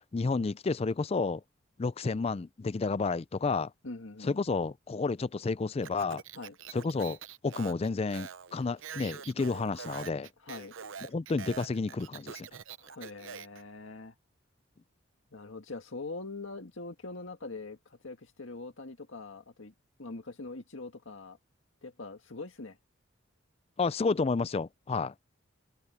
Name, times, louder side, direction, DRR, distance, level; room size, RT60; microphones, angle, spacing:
voice 1, 0.1-1.4 1.8-3.7 4.2-6.2 6.7-7.2 7.4-10.3 11.1-12.5 23.8-25.1, left 4 dB, 30° left, 0.4 m, -31 dB
voice 2, 3.8-4.4 6.3-6.6 10.4-10.7 12.8-14.1 15.3-19.7 20.0-21.4 21.8-22.8, left 3 dB, 70° left, 1.9 m, -43 dB
Speech, 5.8-13.6, right 7 dB, 70° right, 0.8 m, -45 dB
head